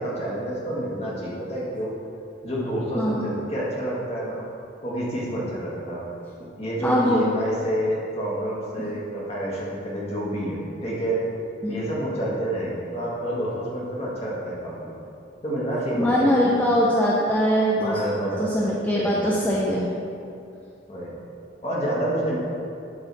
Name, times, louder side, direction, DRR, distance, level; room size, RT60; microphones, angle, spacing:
voice 1, 0.0-1.9 2.4-4.4 4.8-6.0 6.6-11.2 11.7-14.9 15.4-16.7 17.8-19.6 20.9-21.1 21.6-22.4, right 1 dB, 30° left, -6 dB, 1.7 m, -28 dB
voice 2, 3.0-3.3 6.8-7.2 11.6-11.9 16.0-18.0 18.4-19.9, equal, 10° left, -5 dB, 0.5 m, -22 dB
11.5 x 3.9 x 4.1 m, 2.6 s
head